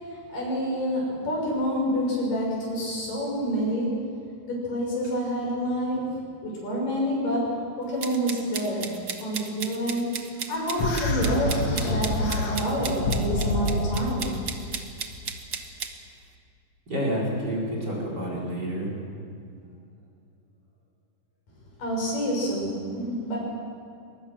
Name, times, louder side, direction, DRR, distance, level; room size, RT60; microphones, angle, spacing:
voice 1, 0.3-4.1 4.4-8.9 9.2-14.4 21.8-23.4, equal, 85° left, -3 dB, 7.8 m, -28 dB
sound 1, 8.0-15.9, right 6 dB, 60° right, 1.1 m, -35 dB
sound 2, 10.8-14.2, left 2 dB, 50° left, 2.9 m, -27 dB
voice 2, 16.9-18.9, equal, 30° right, -3 dB, 4.8 m, -29 dB
22.5 x 20.5 x 6.4 m, 2.4 s
omnidirectional pair, 3.8 m